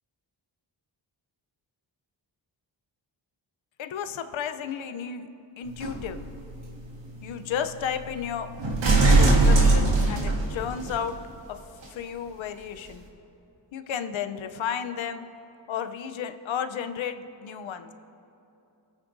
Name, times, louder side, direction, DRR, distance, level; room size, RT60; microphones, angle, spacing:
voice 1, 3.8-5.3 5.6-6.2 7.2-8.5 9.2-11.2 11.5-11.6 11.9-13.0 13.7-15.2 15.7-17.9, left 8 dB, 85° left, 9 dB, 0.7 m, -33 dB
sound 1, 5.7-11.0 11.8-11.9, right 2 dB, 70° right, 1.7 m, -23 dB
23.5 x 9.0 x 2.6 m, 2.7 s
cardioid pair, 80°, 45 cm